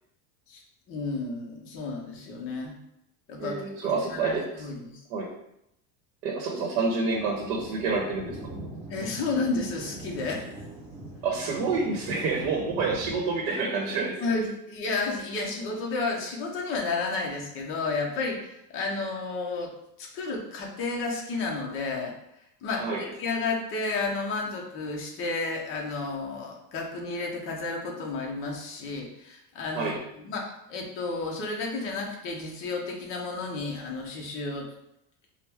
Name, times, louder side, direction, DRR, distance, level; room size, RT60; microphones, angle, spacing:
voice 1, 0.9-2.8 3.3-5.0 8.9-10.5 14.2-19.7 20.0-22.1 22.6-30.4 30.7-34.7, left 3 dB, 30° left, 0 dB, 0.5 m, -32 dB
voice 2, 3.4-4.4 5.1-5.3 6.2-8.4 11.2-14.2 22.8-23.0 29.7-30.0, right 4 dB, 85° right, 0 dB, 0.8 m, -28 dB
Thunder, 7.1-13.5, right 1 dB, 5° right, 1.1 m, -42 dB
4.4 x 2.0 x 3.4 m, 0.80 s
cardioid pair, 165°, 49 cm